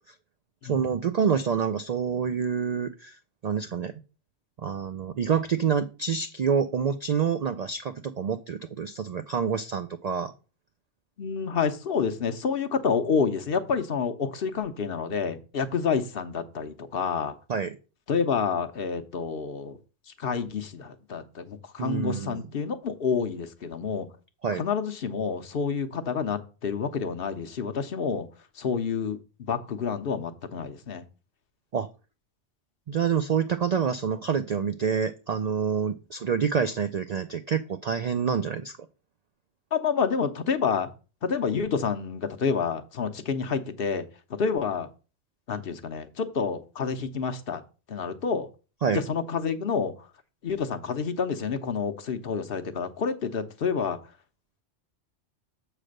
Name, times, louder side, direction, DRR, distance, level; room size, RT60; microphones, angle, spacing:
voice 1, 0.6-3.2 3.4-3.9 4.6-10.3 17.5-17.8 21.8-22.4 24.4-24.6 31.7-31.9 32.9-38.7 48.8-49.0, right 7 dB, 60° right, 0.4 m, -27 dB
voice 2, 11.2-17.3 18.1-19.8 20.1-24.1 24.6-28.3 28.6-31.0 39.7-40.9 41.2-44.9 45.5-47.6 47.9-48.5 48.9-49.9 50.4-54.0, left 6 dB, 55° left, 0.9 m, -28 dB
7.5 x 3.3 x 6.4 m
omnidirectional pair, 1.2 m